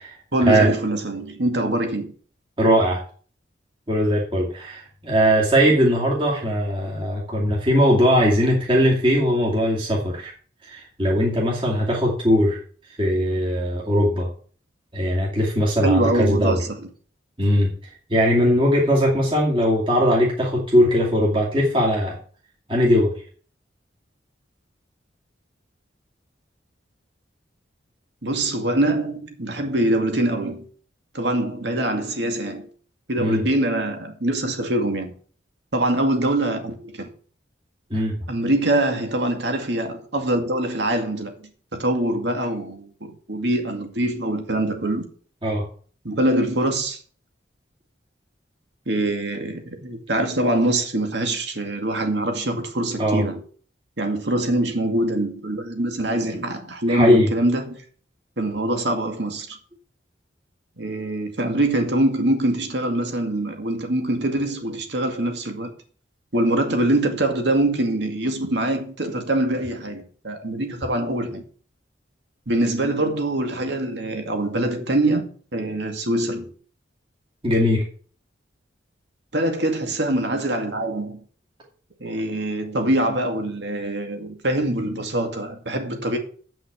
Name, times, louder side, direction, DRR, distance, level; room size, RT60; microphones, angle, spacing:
voice 1, 0.3-2.1 15.8-16.9 28.2-30.6 31.1-32.7 33.1-35.1 35.7-37.1 38.3-45.1 46.0-47.0 48.9-53.4 54.0-57.8 58.4-59.6 60.8-65.7 66.3-71.4 72.5-76.5 79.3-81.2 82.0-86.2, right 1 dB, 60° right, 2.2 m, -24 dB
voice 2, 2.6-3.0 3.9-10.3 10.7-12.6 13.0-14.3 14.9-16.6 17.4-17.7 18.1-22.2 22.7-23.1 33.2-33.4 37.9-38.2 45.4-45.6 53.0-53.2 56.9-57.3 77.4-77.8, equal, 25° right, 2.4 m, -19 dB
8.0 x 6.0 x 8.1 m
head